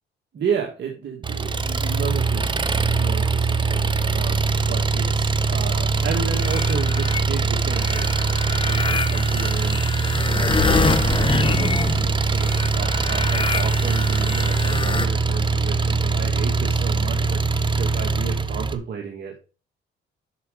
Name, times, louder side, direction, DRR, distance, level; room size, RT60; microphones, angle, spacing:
voice 1, 0.3-19.3, right 6 dB, 60° right, 1 dB, 2.0 m, -33 dB
Engine, 1.2-18.8, right 4 dB, 25° right, 0.7 m, -22 dB
sound 1, 5.9-7.2 7.7-15.1, left 4 dB, 25° left, 0.9 m, -26 dB
8.1 x 6.1 x 5.2 m, 0.36 s
cardioid pair, 90°, 20 cm